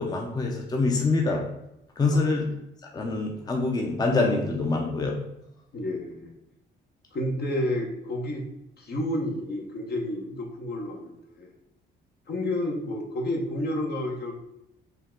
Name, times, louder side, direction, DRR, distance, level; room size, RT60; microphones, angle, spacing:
voice 1, 0.0-1.4 2.0-2.5 2.9-5.2, left 3 dB, 20° left, 1 dB, 0.6 m, -25 dB
voice 2, 5.7-6.3 7.1-8.5 8.8-11.5 12.3-14.3, left 1 dB, 55° left, 1 dB, 1.0 m, -30 dB
5.6 x 2.3 x 3.7 m, 0.84 s
cardioid pair, 90°, 20 cm